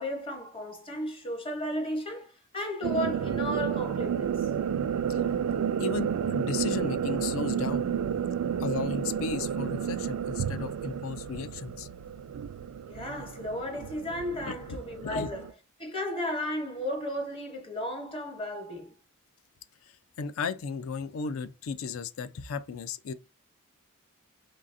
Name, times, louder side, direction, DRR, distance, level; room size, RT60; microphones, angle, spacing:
voice 1, 0.0-4.3 8.5-8.6 12.8-15.5 15.8-18.9, left 1 dB, 25° left, 0.9 m, -34 dB
sound 1, 2.8-15.5, right 8 dB, 80° right, 0.3 m, -31 dB
voice 2, 5.8-7.9 8.6-11.9 14.5-14.6 15.0-15.3 20.2-23.1, left 5 dB, 70° left, 0.4 m, -34 dB
3.8 x 3.2 x 2.5 m
head